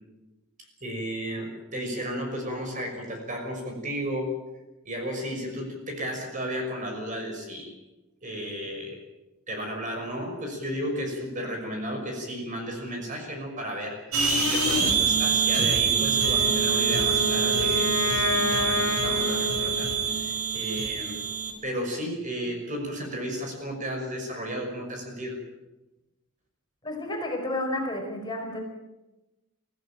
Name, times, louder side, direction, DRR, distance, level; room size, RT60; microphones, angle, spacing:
voice 1, 0.8-4.3 4.8-7.7 8.2-9.0 9.5-14.0 14.3-19.9 20.2-21.2 21.6-25.4, equal, 35° right, 3 dB, 5.9 m, -33 dB
sound 1, 14.1-21.5, right 6 dB, 85° right, 5.2 m, -25 dB
Wind instrument woodwind instrument, 16.1-20.3, left 2 dB, 65° left, 2.9 m, -30 dB
voice 2, 26.8-28.6, left 1 dB, 20° left, 1 dB, 4.9 m, -31 dB
24.0 x 16.0 x 9.1 m, 1.0 s
head